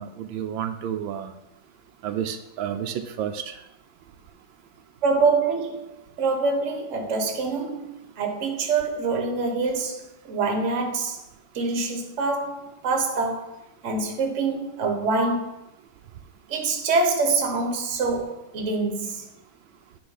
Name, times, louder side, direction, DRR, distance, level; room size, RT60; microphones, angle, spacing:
voice 1, 0.0-1.3 2.0-3.6, right 9 dB, 85° right, 1.4 m, -31 dB
voice 2, 5.0-11.2 11.5-15.5 16.5-19.3, right 3 dB, 45° right, 1.3 m, -25 dB
9.6 x 3.6 x 5.6 m
omnidirectional pair, 2.1 m